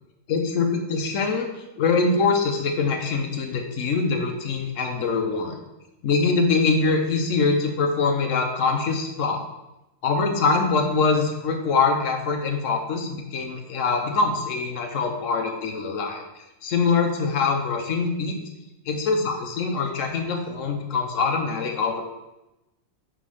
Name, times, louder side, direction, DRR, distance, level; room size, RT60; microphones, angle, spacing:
voice 1, 0.3-1.5 1.8-5.6 6.0-9.4 10.0-16.2 16.6-18.4 18.9-22.0, left 4 dB, 80° left, 4 dB, 1.2 m, -23 dB
5.1 x 3.6 x 5.4 m, 0.96 s
omnidirectional pair, 1.3 m